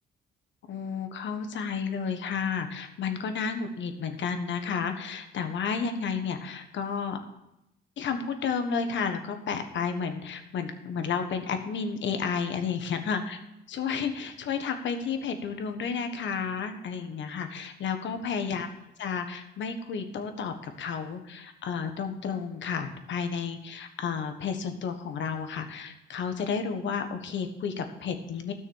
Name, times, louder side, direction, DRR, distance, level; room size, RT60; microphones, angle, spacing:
voice 1, 0.7-7.2 8.0-13.4 13.7-18.7 19.0-28.5, left 6 dB, 70° left, 7 dB, 1.5 m, -32 dB
13.5 x 6.4 x 7.3 m, 0.86 s
cardioid pair, 90°, 20 cm